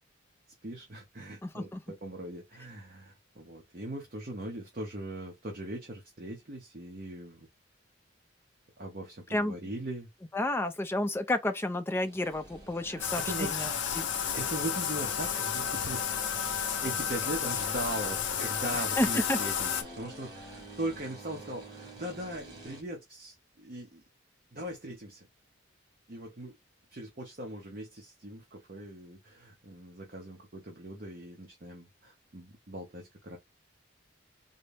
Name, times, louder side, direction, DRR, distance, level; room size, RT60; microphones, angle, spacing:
voice 1, 0.6-7.5 8.8-10.1 12.8-13.7 14.3-16.0 16.8-24.0 24.5-25.3 26.1-26.5 26.9-33.4, right 1 dB, 45° right, 0.8 m, -40 dB
voice 2, 1.4-1.8 9.3-9.6 10.3-13.7 14.0-14.1 19.0-19.4, left 1 dB, 10° left, 0.4 m, -31 dB
sound 1, 12.0-22.8, right 1 dB, 20° right, 1.5 m, -47 dB
Bathtub (filling or washing), 13.0-19.8, left 8 dB, 60° left, 0.6 m, -32 dB
4.0 x 2.0 x 3.3 m
head